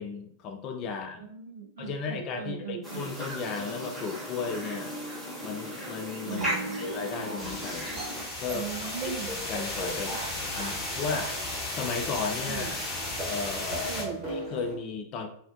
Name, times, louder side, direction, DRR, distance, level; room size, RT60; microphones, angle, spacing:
voice 1, 0.0-1.3 1.8-4.9 5.4-8.0 8.4-10.1 10.5-11.3 11.7-12.8 13.2-13.9 14.3-15.3, left 5 dB, 35° left, 4 dB, 0.4 m, -35 dB
voice 2, 0.9-3.1 6.3-6.8 8.5-9.3 10.1-10.8 11.1-11.4 12.4-12.8 13.8-14.4, right 7 dB, 60° right, 4 dB, 0.4 m, -39 dB
sound 1, 2.8-8.2, right 1 dB, 10° right, 1.0 m, -36 dB
sound 2, 6.4-14.7, right 1 dB, 35° right, 1.0 m, -40 dB
sound 3, 7.4-14.0, left 2 dB, 15° left, 1.0 m, -35 dB
2.4 x 2.1 x 2.5 m, 0.62 s
figure-of-eight pair, 90°, 0 cm